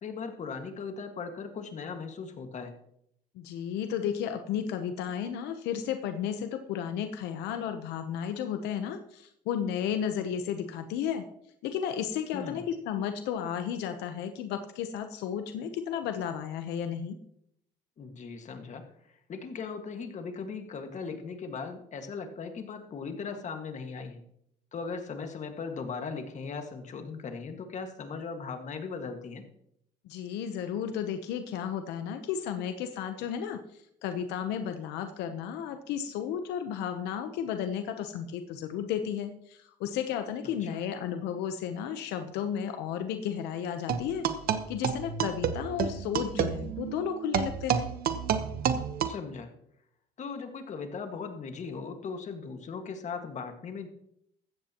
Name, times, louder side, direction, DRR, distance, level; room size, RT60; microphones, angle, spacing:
voice 1, 0.0-2.7 12.3-12.6 18.0-18.9 19.3-24.2 24.7-29.4 40.4-40.8 49.1-49.5 50.2-53.9, left 5 dB, 45° left, 5 dB, 1.8 m, -38 dB
voice 2, 3.3-11.2 11.6-17.2 30.0-33.6 34.0-44.3 44.7-47.9, left 8 dB, 90° left, 8 dB, 0.9 m, -33 dB
sound 1, 43.9-49.1, right 8 dB, 60° right, 1.1 m, -30 dB
15.5 x 13.0 x 3.0 m, 0.74 s
cardioid pair, 110°, 17 cm